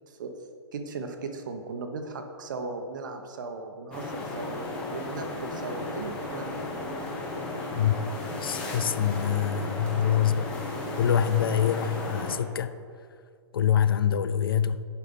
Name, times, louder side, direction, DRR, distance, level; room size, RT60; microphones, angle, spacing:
voice 1, 0.7-4.6 4.9-6.7, right 4 dB, 45° right, 6 dB, 0.9 m, -37 dB
sound 1, 3.9-12.4, left 2 dB, 5° left, 0.6 m, -35 dB
voice 2, 8.4-10.5 10.9-12.7 13.5-14.8, left 9 dB, 50° left, 13 dB, 0.4 m, -25 dB
10.0 x 5.8 x 5.3 m, 2.2 s
hypercardioid pair, 180°, 15 cm